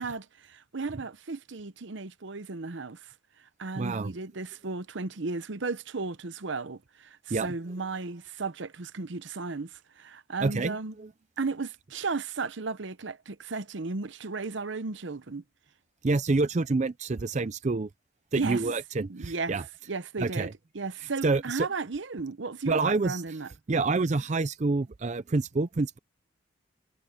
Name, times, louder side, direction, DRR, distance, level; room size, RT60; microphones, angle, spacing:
voice 1, 0.0-3.1 3.4-10.9 11.4-15.4 18.4-18.6 19.1-19.6 19.9-20.5 20.7-23.5, right 4 dB, 65° right, 0.8 m, -35 dB
voice 2, 3.8-4.1 7.3-7.5 10.4-11.1 16.0-17.9 18.3-19.6 20.2-20.5 21.2-21.7 22.7-23.2 23.7-26.0, right 3 dB, 35° right, 0.5 m, -27 dB
head